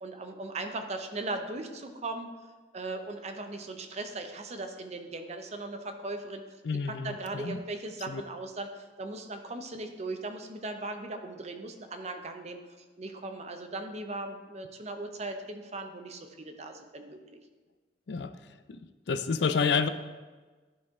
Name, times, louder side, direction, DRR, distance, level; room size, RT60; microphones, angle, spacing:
voice 1, 0.0-2.3 2.7-6.4 6.9-12.6 13.0-17.4, right 2 dB, 40° right, 6 dB, 0.7 m, -38 dB
voice 2, 6.6-7.6 8.1-8.2 18.1-18.3 18.7-18.8 19.1-19.9, left 5 dB, 75° left, 11 dB, 0.5 m, -29 dB
12.5 x 4.2 x 3.7 m, 1.3 s
head